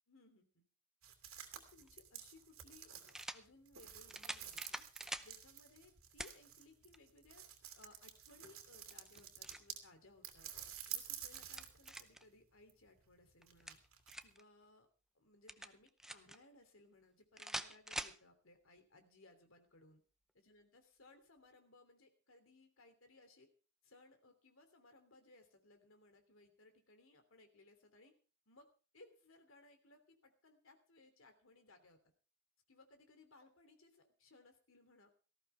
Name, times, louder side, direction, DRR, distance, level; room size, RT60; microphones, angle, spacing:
voice 1, 0.1-0.6 1.5-4.8 5.2-7.4 7.7-10.5 10.9-13.8 14.2-14.9 15.1-20.0 20.3-23.5 23.8-28.1 28.5-28.7 28.9-32.0 32.7-35.1, left 2 dB, 70° left, 6 dB, 3.0 m, -64 dB
sound 1, 1.0-9.9 10.2-12.1 12.4-14.2, right 10 dB, 85° right, 2.7 m, -51 dB
sound 2, 1.8-1.9 3.1-3.4 4.1-5.3 6.2-6.4 6.9-7.0 8.9-9.7 11.1-12.2 13.4-14.4 15.5-16.4 17.4-18.2, right 1 dB, ahead, 0.6 m, -46 dB
18.5 x 14.5 x 3.4 m, 0.36 s
head